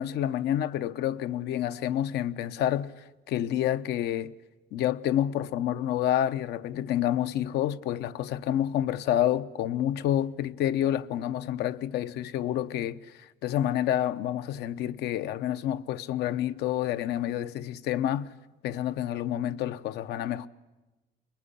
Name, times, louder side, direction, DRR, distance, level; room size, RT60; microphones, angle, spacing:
voice 1, 0.0-2.9 3.3-4.3 4.7-18.3 18.6-20.5, left 11 dB, 75° left, 0.8 m, -28 dB
24.0 x 21.0 x 9.9 m
cardioid pair, 110°, 17 cm